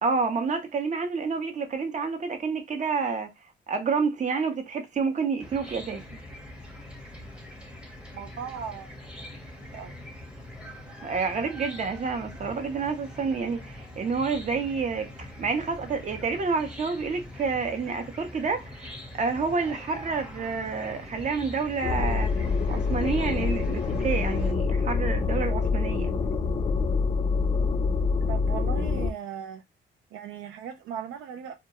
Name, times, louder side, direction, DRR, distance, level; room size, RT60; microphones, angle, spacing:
voice 1, 0.0-3.3 3.7-6.2 11.0-22.3 22.7-26.1, right 5 dB, 35° right, 0.6 m, -29 dB
Chicken rooster / Cricket, 5.4-24.5, left 1 dB, 5° right, 0.8 m, -43 dB
voice 2, 8.1-9.3 9.6-10.0 28.3-29.6 30.1-31.5, right 8 dB, 85° right, 0.4 m, -38 dB
sound 1, 21.8-29.1, left 4 dB, 25° left, 0.4 m, -26 dB
2.3 x 2.1 x 2.9 m
cardioid pair, 90°, 20 cm